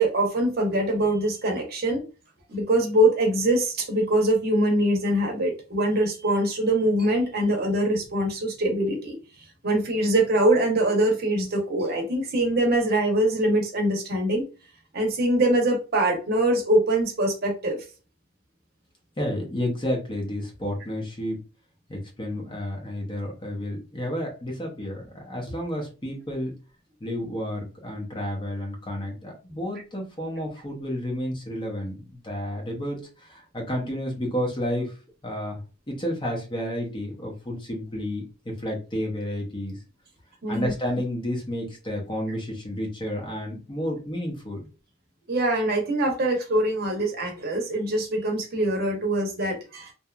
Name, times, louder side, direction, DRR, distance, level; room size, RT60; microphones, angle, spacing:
voice 1, 0.0-2.0 2.5-9.1 9.6-14.5 14.9-17.8 40.4-40.7 45.3-49.9, right 1 dB, 50° right, 2 dB, 0.7 m, -23 dB
voice 2, 19.2-21.4 21.9-26.5 27.0-34.9 35.2-39.8 40.5-44.7, equal, 25° left, 0 dB, 0.7 m, -31 dB
2.8 x 2.2 x 2.3 m, 0.33 s
head